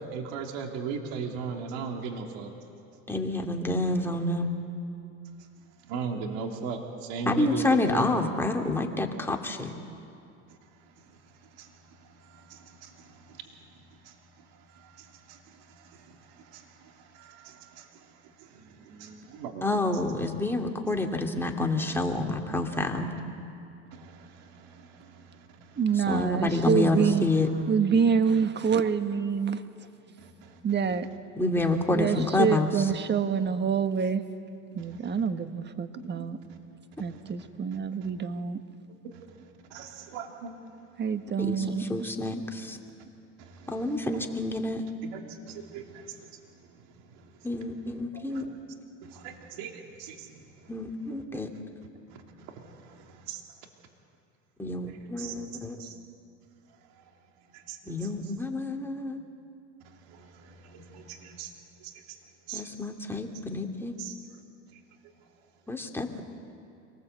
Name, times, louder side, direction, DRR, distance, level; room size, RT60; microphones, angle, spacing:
voice 1, 0.0-2.5 5.6-8.1 10.5-20.0 23.9-26.2 30.1-30.8 34.8-35.2 36.0-36.6 37.0-38.1 39.0-41.0 43.4-44.4 45.0-47.6 48.1-48.6 49.0-50.7 51.3-51.4 52.1-53.4 54.9-55.4 55.8-56.0 56.9-57.1 57.4-58.1 59.8-61.5 61.8-62.2 62.5-62.7 64.0-64.2 64.7-64.8, right 5 dB, 65° right, 2 dB, 3.0 m, -41 dB
voice 2, 3.1-4.5 7.3-9.7 19.6-23.1 26.1-27.5 31.4-32.9 41.4-42.8 43.7-44.8 47.4-48.5 50.7-51.5 54.6-55.8 57.8-59.2 62.5-64.0 65.7-66.2, left 2 dB, 5° left, 2 dB, 2.6 m, -28 dB
voice 3, 25.8-27.3 27.7-29.6 30.6-31.1 31.9-34.2 34.7-36.4 37.0-38.6 41.0-42.1, right 6 dB, 30° right, 9 dB, 1.5 m, -26 dB
26.0 x 19.5 x 8.1 m, 2.5 s
supercardioid pair, 100°, 38 cm